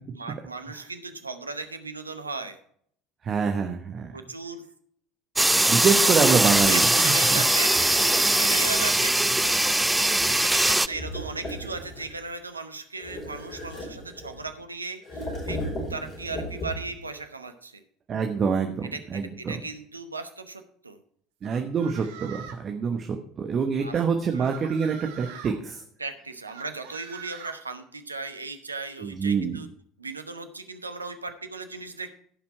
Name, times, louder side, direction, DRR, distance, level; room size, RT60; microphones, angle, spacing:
voice 1, 0.1-2.6 4.1-4.6 6.6-9.9 10.4-15.6 15.9-17.8 18.9-21.0 23.8-24.0 24.3-24.5 26.0-29.7 30.0-32.1, right 3 dB, 90° right, 8 dB, 0.9 m, -37 dB
voice 2, 3.2-4.1 5.7-7.4 18.1-19.6 21.4-25.8 29.0-29.6, right 6 dB, 35° right, 5 dB, 1.1 m, -26 dB
sound 1, 5.4-10.9, right 1 dB, 5° right, 0.4 m, -21 dB
sound 2, 10.9-12.2 13.0-14.5 15.0-17.0, left 1 dB, 40° left, 4.7 m, -35 dB
sound 3, 21.4-22.7 23.9-25.5 26.5-27.6, right 8 dB, 70° right, 1.3 m, -43 dB
15.5 x 5.8 x 4.6 m, 0.63 s
figure-of-eight pair, 70°, 0 cm